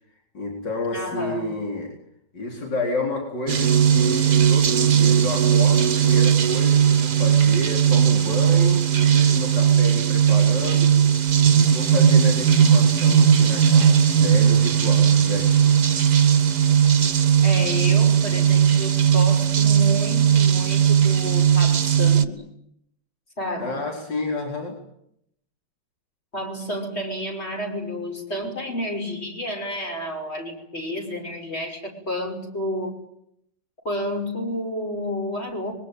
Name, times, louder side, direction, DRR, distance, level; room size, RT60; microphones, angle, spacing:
voice 1, 0.3-1.9 2.3-11.0 11.5-15.8 23.6-24.8, left 2 dB, 70° left, 1 dB, 4.9 m, -30 dB
voice 2, 0.9-1.5 17.4-22.4 23.4-23.8 26.3-33.0 33.8-35.7, left 1 dB, 35° left, 1 dB, 6.2 m, -30 dB
sound 1, 3.5-22.2, right 8 dB, 55° right, 1.7 m, -18 dB
25.5 x 22.5 x 9.2 m, 0.75 s
omnidirectional pair, 2.0 m